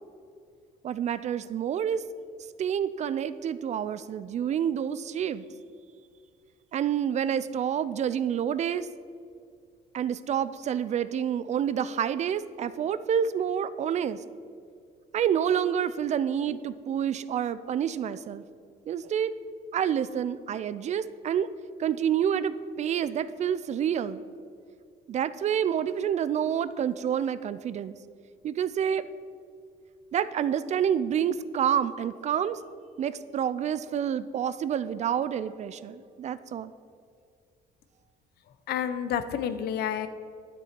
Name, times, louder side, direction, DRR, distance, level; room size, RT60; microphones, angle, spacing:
voice 1, 0.8-2.0 2.6-5.4 6.7-8.9 9.9-14.2 15.1-18.4 18.9-19.4 19.7-21.5 21.8-24.2 25.1-27.9 28.4-29.1 30.1-32.6 33.0-36.7, right 9 dB, 45° right, 15 dB, 0.4 m, -28 dB
voice 2, 38.7-40.1, left 9 dB, 70° left, 12 dB, 0.7 m, -29 dB
10.5 x 6.9 x 4.4 m, 2.3 s
cardioid pair, 110°, 17 cm